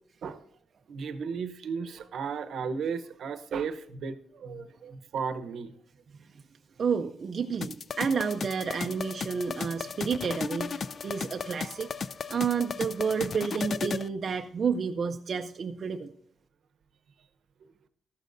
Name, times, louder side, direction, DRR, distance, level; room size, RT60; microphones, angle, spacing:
voice 1, 0.9-5.7, right 6 dB, 65° right, 10 dB, 0.8 m, -35 dB
voice 2, 6.8-11.9 12.3-16.1, right 6 dB, 40° right, 4 dB, 0.5 m, -30 dB
sound 1, 7.6-14.1, left 6 dB, 40° left, 0.3 m, -35 dB
14.0 x 11.5 x 2.6 m, 0.66 s
wide cardioid pair, 170°, 0 cm